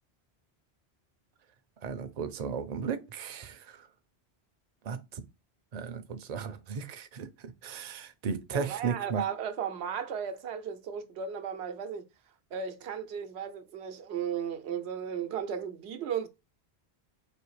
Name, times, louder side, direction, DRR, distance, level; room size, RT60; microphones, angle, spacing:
voice 1, 1.8-3.9 4.8-5.2 5.7-9.2, right 6 dB, 50° right, 0.6 m, -35 dB
voice 2, 8.5-12.1 12.5-16.3, right 8 dB, 85° right, 0.9 m, -35 dB
4.3 x 2.7 x 3.1 m
omnidirectional pair, 1.1 m